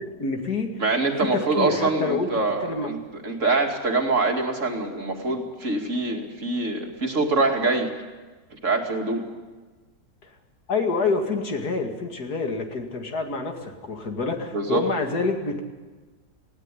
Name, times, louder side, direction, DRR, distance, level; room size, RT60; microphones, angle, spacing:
voice 1, 0.0-0.8 1.2-2.9 10.2-10.4 10.7-15.6, left 3 dB, 60° left, 4 dB, 2.7 m, -27 dB
voice 2, 0.8-3.0 3.2-7.9 8.5-9.2 14.5-14.8, right 3 dB, 45° right, 2 dB, 2.7 m, -24 dB
19.0 x 17.0 x 9.9 m, 1.3 s
omnidirectional pair, 1.8 m